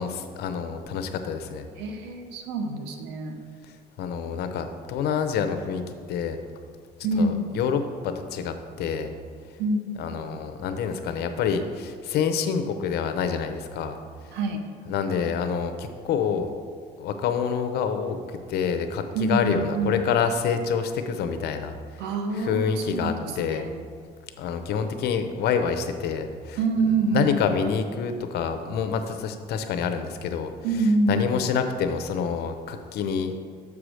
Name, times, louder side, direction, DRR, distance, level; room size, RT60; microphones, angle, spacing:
voice 1, 0.0-1.7 3.6-5.8 6.1-6.4 7.1-9.1 10.0-14.0 14.2-14.4 14.9-16.5 17.0-21.7 22.3-23.7 24.4-26.6 27.1-30.5 31.1-33.3, left 6 dB, 75° left, 8 dB, 0.7 m, -27 dB
voice 2, 1.8-3.4 7.0-7.5 9.6-10.3 14.3-14.6 19.1-20.0 22.0-23.8 26.6-27.4 30.6-31.3, right 2 dB, 90° right, 5 dB, 0.9 m, -26 dB
6.9 x 4.9 x 6.3 m, 2.1 s
cardioid pair, 110°, 17 cm